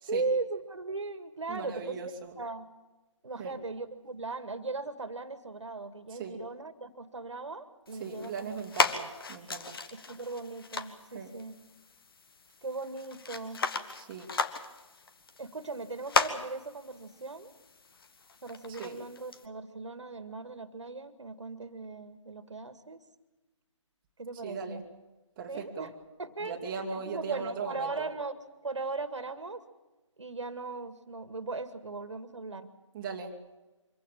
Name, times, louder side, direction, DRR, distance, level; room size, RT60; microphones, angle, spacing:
voice 1, 0.1-2.1 2.4-2.7 3.2-8.5 9.9-11.6 12.6-13.6 15.4-17.5 18.4-23.0 24.2-24.8 25.5-25.9 26.2-26.6 26.9-28.3 28.6-29.6 30.2-32.7, right 3 dB, 65° right, 12 dB, 2.0 m, -38 dB
voice 2, 1.5-2.4 3.4-3.5 6.1-6.4 8.0-9.8 11.1-11.3 14.0-14.3 18.7-19.0 24.4-24.8 25.4-25.9 26.4-28.1 32.9-33.4, right 5 dB, 15° right, -1 dB, 2.2 m, -39 dB
sound 1, 7.9-19.5, left 4 dB, 45° left, 1.7 m, -36 dB
25.0 x 16.0 x 8.9 m, 1.1 s
figure-of-eight pair, 150°, 16 cm